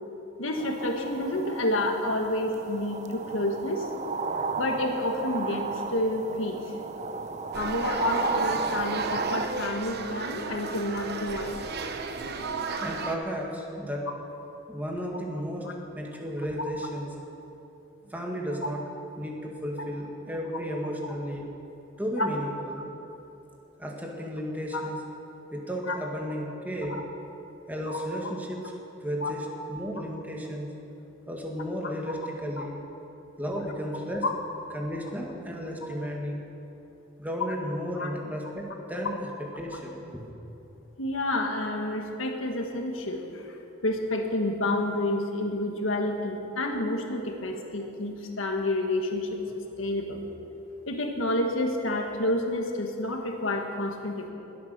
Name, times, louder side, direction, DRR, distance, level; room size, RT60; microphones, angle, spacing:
voice 1, 0.4-3.9 4.6-6.6 7.5-11.6 22.2-22.3 24.7-24.8 25.9-26.0 26.9-27.0 27.9-28.0 29.2-29.3 32.1-32.2 32.6-32.7 34.2-34.3 38.0-38.1 41.0-43.6 43.8-50.2 50.9-54.3, left 1 dB, 85° left, 3 dB, 1.7 m, -29 dB
sound 1, 0.5-9.4, right 4 dB, 35° right, 0.6 m, -33 dB
sound 2, 7.5-13.2, right 4 dB, 55° right, 1.0 m, -34 dB
voice 2, 12.8-14.1 14.7-15.7 15.9-17.1 18.0-18.8 19.2-21.5 22.0-22.8 23.8-25.0 25.5-27.0 27.7-28.7 29.0-30.7 31.3-32.8 33.4-34.2 34.7-36.4 37.2-40.2, equal, 10° right, -1 dB, 1.9 m, -33 dB
21.5 x 8.4 x 6.7 m, 2.9 s
head